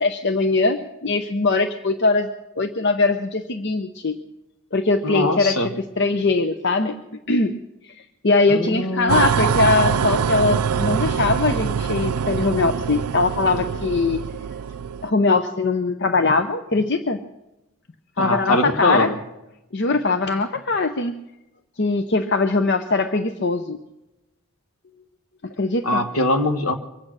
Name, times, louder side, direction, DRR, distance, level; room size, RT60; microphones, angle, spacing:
voice 1, 0.0-2.3 2.6-4.2 4.7-7.0 7.3-7.6 7.8-14.2 15.0-17.2 18.2-19.1 19.7-21.2 21.8-23.8 25.4-26.0, left 3 dB, 50° left, 8 dB, 0.7 m, -21 dB
voice 2, 5.0-5.7 8.5-9.2 18.2-19.1 25.8-26.7, left 1 dB, 70° left, 7 dB, 1.4 m, -22 dB
sound 1, 9.1-15.1, right 7 dB, 85° right, 0.4 m, -24 dB
24.0 x 8.6 x 6.3 m, 0.93 s
head